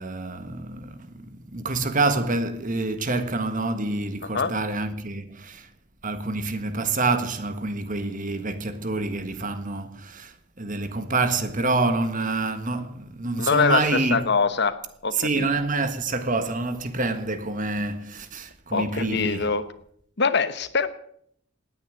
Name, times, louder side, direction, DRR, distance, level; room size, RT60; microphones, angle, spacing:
voice 1, 0.0-5.7 6.0-14.3 15.1-19.5, right 3 dB, 40° right, 1.5 m, -27 dB
voice 2, 13.4-13.8 14.1-14.8 15.0-15.5 18.7-19.6 20.2-20.9, left 5 dB, 50° left, 1.1 m, -23 dB
18.0 x 9.9 x 8.0 m
head